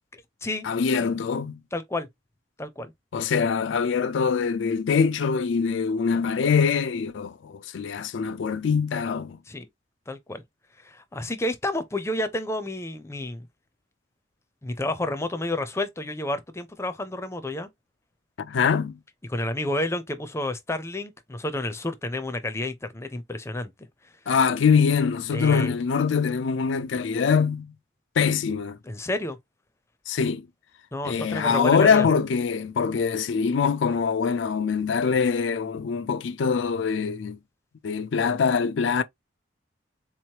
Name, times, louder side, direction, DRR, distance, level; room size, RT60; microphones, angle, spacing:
voice 1, 0.6-1.6 3.1-9.4 18.4-19.0 24.3-27.7 28.2-28.8 30.1-30.5 31.0-37.4 37.8-39.0, left 6 dB, 75° left, 0.4 m, -23 dB
voice 2, 1.7-2.1 2.6-2.9 9.5-9.7 10.1-10.4 10.8-13.5 14.6-17.7 19.3-23.7 25.3-25.7 28.8-29.4 30.9-32.1, left 1 dB, 15° left, 0.5 m, -30 dB
3.9 x 3.0 x 2.8 m
head